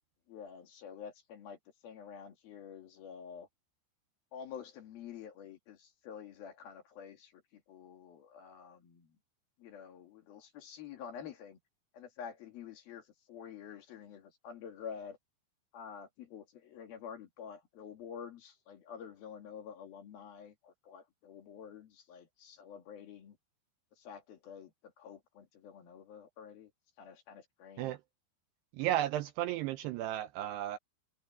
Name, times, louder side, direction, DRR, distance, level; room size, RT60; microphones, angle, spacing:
voice 1, 0.3-1.6 1.8-3.5 4.3-9.1 9.6-11.6 11.9-15.2 15.7-23.4 24.0-24.7 25.0-26.7 27.0-27.9, left 7 dB, 60° left, 3.9 m, -48 dB
voice 2, 28.7-30.8, right 13 dB, 80° right, 2.5 m, -34 dB
omnidirectional pair, 5.3 m